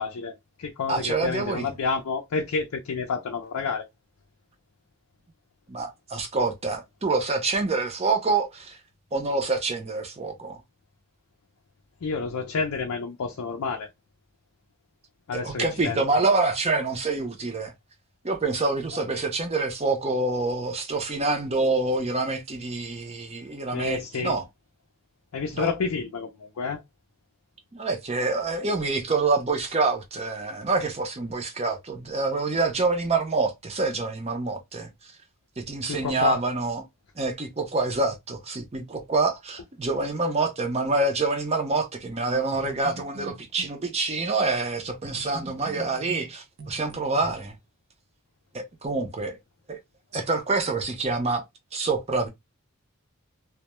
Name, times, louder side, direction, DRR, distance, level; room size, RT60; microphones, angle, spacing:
voice 1, 0.0-3.8 12.0-13.9 15.3-16.0 23.7-24.4 25.3-26.8 35.8-36.4, left 5 dB, 90° left, 0.5 m, -29 dB
voice 2, 0.9-1.7 5.7-8.8 9.1-10.6 15.3-17.7 18.2-24.5 25.5-25.7 27.7-34.9 35.6-36.8 37.2-47.6 48.5-49.4 49.7-49.8 50.1-51.4 51.7-52.3, right 3 dB, 30° right, 0.5 m, -26 dB
sound 1, 42.3-43.8 45.0-47.3, right 1 dB, 70° right, 0.6 m, -42 dB
2.2 x 2.1 x 2.9 m
head